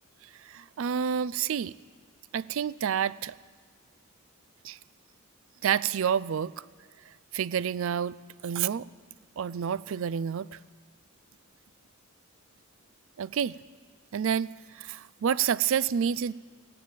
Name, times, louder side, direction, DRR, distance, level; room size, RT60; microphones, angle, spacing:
voice 1, 0.4-1.7 2.3-3.3 4.6-4.8 5.6-6.5 7.3-8.2 8.4-8.9 9.4-10.6 13.2-13.6 14.1-16.3, right 8 dB, 65° right, 19 dB, 0.4 m, -28 dB
15.5 x 10.5 x 9.0 m, 1.5 s
head